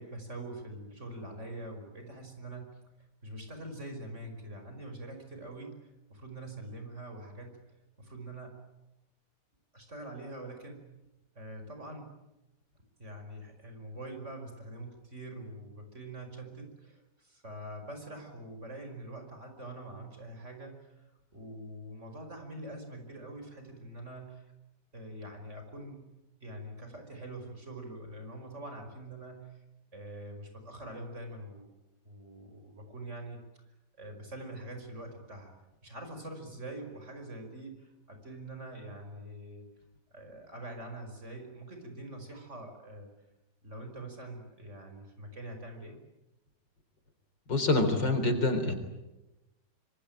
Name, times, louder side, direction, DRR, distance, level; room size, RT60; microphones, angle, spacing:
voice 1, 0.0-2.8 3.2-7.6 8.0-8.6 9.7-10.9 11.4-12.2 13.0-21.1 21.3-24.5 24.9-26.1 26.4-29.6 29.9-31.7 32.0-33.4 34.0-35.5 35.8-39.7 40.1-43.1 43.6-46.0, right 1 dB, 40° right, 5 dB, 5.7 m, -44 dB
voice 2, 47.5-48.7, left 2 dB, 75° left, 8 dB, 4.5 m, -26 dB
25.5 x 25.0 x 9.0 m, 0.98 s
omnidirectional pair, 2.0 m